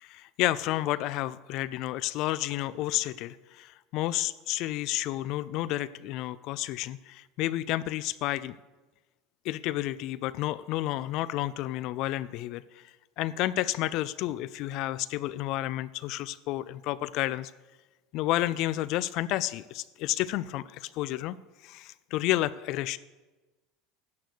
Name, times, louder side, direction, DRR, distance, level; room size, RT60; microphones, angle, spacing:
voice 1, 0.0-8.6 9.4-12.6 13.2-17.5 18.1-21.4 21.6-23.0, left 15 dB, 45° left, 16 dB, 0.4 m, -31 dB
12.5 x 8.5 x 6.5 m, 1.2 s
cardioid pair, 165°, 0 cm